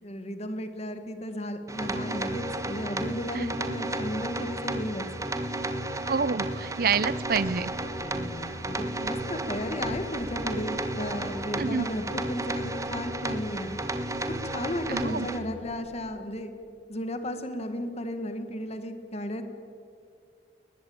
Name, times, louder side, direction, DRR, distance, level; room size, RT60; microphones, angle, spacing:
voice 1, 0.0-5.1 8.0-13.8 14.3-16.5 16.9-19.4, left 1 dB, 35° left, 8 dB, 1.7 m, -34 dB
sound 1, 1.7-15.4, right 1 dB, 20° right, 1.3 m, -33 dB
voice 2, 6.1-7.7 11.6-11.9 14.9-15.3, right 5 dB, 55° right, 18 dB, 0.7 m, -27 dB
Telephone, 7.1-16.1, right 1 dB, 65° left, 5.9 m, -54 dB
sound 2, 9.8-11.9, equal, 15° left, 2.9 m, -50 dB
22.5 x 20.0 x 8.7 m, 2.4 s
head